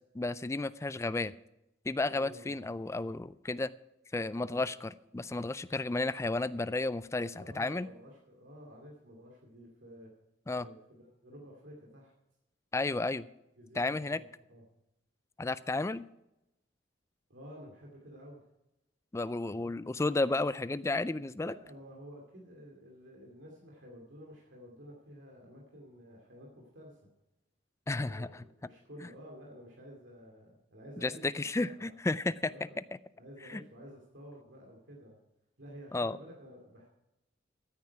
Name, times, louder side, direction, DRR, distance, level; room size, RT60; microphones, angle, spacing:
voice 1, 0.1-1.3 1.9-3.7 4.1-7.9 10.5-10.7 12.7-13.3 13.8-14.2 15.4-16.0 19.1-21.5 27.9-28.4 31.0-32.5 33.5-33.6 35.9-36.2, left 2 dB, 15° left, 16 dB, 0.3 m, -32 dB
voice 2, 2.1-2.5 4.3-4.7 7.3-10.1 10.6-12.1 13.6-14.6 17.3-18.4 19.5-19.8 21.4-27.0 27.9-31.9 32.5-32.8 33.2-35.2 35.6-36.9, equal, 70° right, -1 dB, 2.5 m, -51 dB
14.0 x 9.5 x 4.7 m, 0.90 s
head